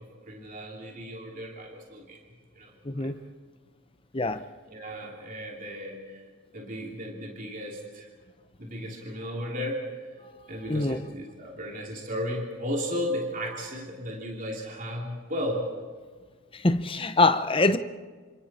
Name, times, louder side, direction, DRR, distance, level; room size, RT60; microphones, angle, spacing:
voice 1, 0.0-2.2 2.5-2.7 3.0-3.1 4.7-6.2 6.5-8.1 8.6-10.0 10.5-15.7, equal, 40° right, -1 dB, 3.1 m, -35 dB
voice 2, 2.9-3.2 4.1-4.4 10.7-11.0 16.6-17.8, left 2 dB, 25° left, 10 dB, 0.8 m, -23 dB
28.5 x 26.0 x 4.4 m, 1.5 s
head